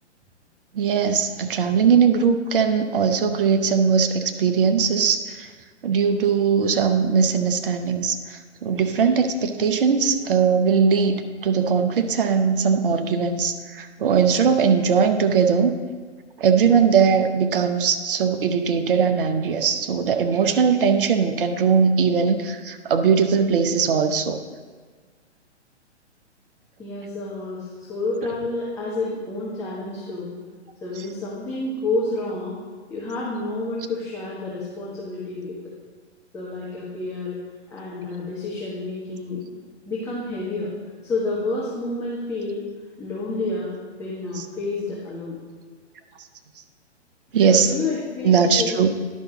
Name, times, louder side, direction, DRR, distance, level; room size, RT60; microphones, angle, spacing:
voice 1, 0.7-5.5 5.8-15.7 16.4-24.4 47.3-47.7 48.2-48.9, right 6 dB, 50° right, 7 dB, 0.8 m, -20 dB
voice 2, 26.8-30.3 30.8-32.6 32.9-35.6 36.3-37.4 37.7-39.4 39.8-40.7 41.0-42.6 43.0-45.4 47.5-49.0, left 2 dB, 10° left, -7 dB, 1.1 m, -29 dB
10.5 x 5.7 x 3.9 m, 1.5 s
figure-of-eight pair, 125°, 36 cm